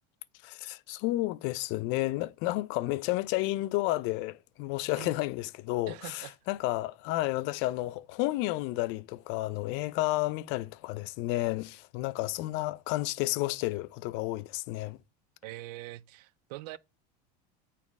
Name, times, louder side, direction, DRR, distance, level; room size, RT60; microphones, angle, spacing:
voice 1, 0.4-15.0, left 18 dB, 60° left, 0.5 m, -31 dB
voice 2, 5.9-6.4 15.4-16.8, right 17 dB, 80° right, 0.5 m, -43 dB
9.1 x 4.2 x 3.5 m
supercardioid pair, 115°, 21 cm